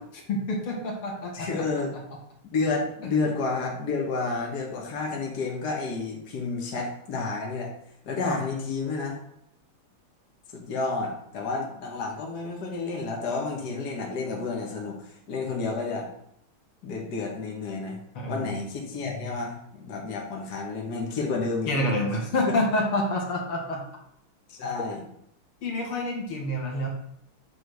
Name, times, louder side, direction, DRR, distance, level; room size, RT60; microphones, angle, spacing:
voice 1, 0.1-1.5 3.0-3.2 18.1-18.6 21.7-23.8 25.6-26.9, left 1 dB, 85° left, -1 dB, 2.7 m, -28 dB
voice 2, 1.3-1.9 2.5-7.7 8.1-9.2 10.5-16.1 16.8-18.0 18.3-21.7 24.5-25.0, left 3 dB, 50° left, -1 dB, 1.9 m, -30 dB
8.3 x 3.7 x 6.4 m, 0.73 s
omnidirectional pair, 2.3 m